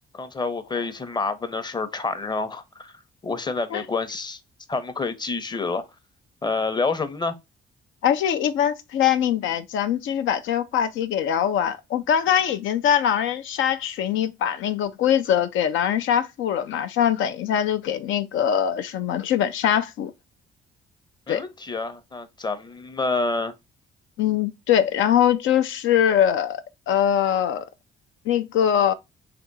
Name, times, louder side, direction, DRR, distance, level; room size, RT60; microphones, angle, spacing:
voice 1, 0.1-2.9 3.2-4.4 4.7-5.8 6.4-7.3 21.3-23.5, left 3 dB, 20° left, 0.7 m, -28 dB
voice 2, 8.0-20.1 21.3-21.4 24.2-26.6 26.9-27.7 28.3-28.9, left 9 dB, 80° left, 0.5 m, -22 dB
3.5 x 2.9 x 3.9 m
cardioid pair, 90°, 20 cm